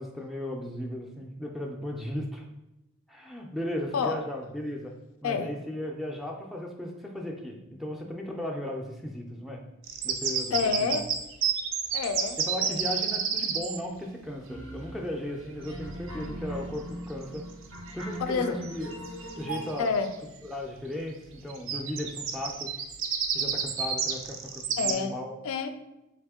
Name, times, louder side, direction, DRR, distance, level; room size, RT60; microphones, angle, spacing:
voice 1, 0.0-2.4 3.1-4.9 5.2-9.6 10.0-10.7 12.5-17.5 17.9-18.9 19.3-19.9 20.4-22.7 23.3-25.3, left 1 dB, ahead, 1 dB, 0.4 m, -36 dB
sound 1, 9.8-13.8 17.2-17.4 17.9-18.3 18.6-18.7 19.0-20.1 21.5-24.9, right 6 dB, 70° right, 0.4 m, -30 dB
voice 2, 10.5-11.1 11.9-12.9 18.2-18.6 19.8-20.1 24.8-25.1 25.4-25.7, left 5 dB, 80° left, 8 dB, 0.4 m, -28 dB
sound 2, 14.5-19.8, right 1 dB, 90° right, 0.9 m, -40 dB
3.6 x 3.3 x 3.5 m, 0.92 s
head